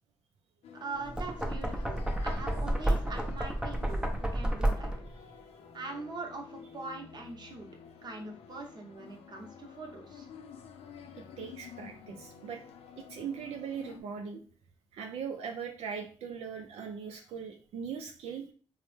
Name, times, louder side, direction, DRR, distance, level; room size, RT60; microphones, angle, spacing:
sound 1, 0.6-14.0, left 6 dB, 80° left, 0.4 m, -51 dB
voice 1, 0.7-4.9 5.7-7.7 8.0-10.3, right 3 dB, 45° right, 2 dB, 0.8 m, -42 dB
Knock, 1.0-5.2, right 1 dB, 10° right, 0.5 m, -31 dB
voice 2, 11.4-12.6 13.0-14.4 14.9-18.5, right 6 dB, 85° right, 3 dB, 0.4 m, -40 dB
3.1 x 2.0 x 3.1 m, 0.40 s
cardioid pair, 75°, 10 cm